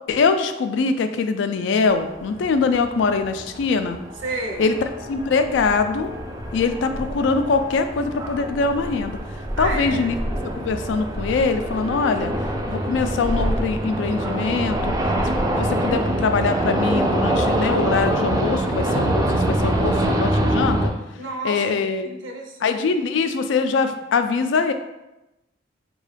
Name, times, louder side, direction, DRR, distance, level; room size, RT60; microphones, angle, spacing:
voice 1, 0.1-4.0 4.6-4.7 5.1-6.1 6.5-9.2 9.6-10.2 10.4-12.3 12.7-14.9 15.6-20.9 21.4-22.1 22.6-24.7, left 4 dB, 70° left, 9 dB, 0.3 m, -23 dB
sound 1, 1.9-20.9, right 1 dB, 20° right, 0.3 m, -25 dB
voice 2, 4.2-4.7 9.6-10.2 21.1-22.8, right 2 dB, 80° right, 1 dB, 0.6 m, -31 dB
3.9 x 2.2 x 3.2 m, 0.96 s
head